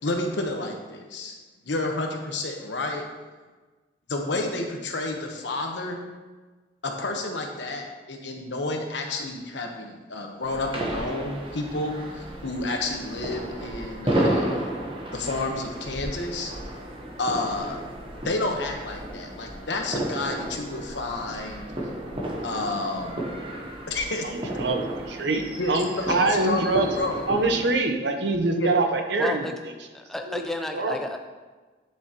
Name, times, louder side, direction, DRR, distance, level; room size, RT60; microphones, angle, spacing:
voice 1, 0.0-1.4 1.6-3.0 4.1-6.0 6.8-14.7 15.1-16.5 17.2-17.8 18.2-21.7 22.4-23.2 23.9-24.2 25.6-27.2 28.5-28.7, left 2 dB, 75° left, 3 dB, 1.1 m, -30 dB
sound 1, 10.4-27.7, right 1 dB, 30° right, 1.0 m, -33 dB
voice 2, 24.2-26.9 27.3-29.4 30.3-30.4 30.7-30.9, right 3 dB, 70° right, 5 dB, 0.8 m, -24 dB
voice 3, 29.2-29.5 29.9-31.2, left 2 dB, ahead, 3 dB, 0.5 m, -32 dB
9.6 x 7.0 x 3.0 m, 1.3 s
head